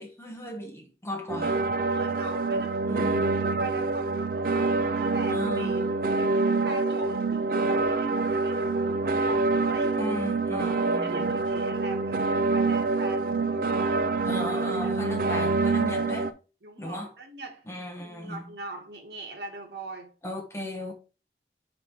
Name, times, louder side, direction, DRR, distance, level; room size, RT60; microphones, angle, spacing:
voice 1, 0.0-1.6 2.9-3.4 5.3-5.9 9.9-11.3 14.2-16.4 16.8-17.1 17.7-18.4 20.2-20.9, left 1 dB, 15° left, 1.1 m, -36 dB
sound 1, 1.3-16.3, right 3 dB, 50° right, 0.4 m, -26 dB
voice 2, 1.8-5.9 6.2-10.0 10.5-15.5 16.6-17.6 18.0-20.1, right 2 dB, 70° right, 1.8 m, -41 dB
5.1 x 4.9 x 4.6 m
head